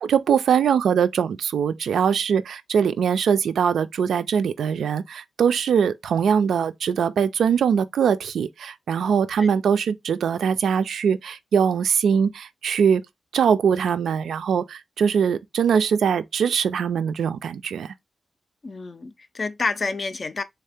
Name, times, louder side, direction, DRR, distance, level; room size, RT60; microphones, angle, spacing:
voice 1, 0.0-13.0 13.3-17.9, right 7 dB, 90° right, 0.4 m, -22 dB
voice 2, 18.6-20.4, left 4 dB, 35° left, 0.4 m, -29 dB
3.6 x 2.8 x 3.4 m
wide cardioid pair, 130°, 0 cm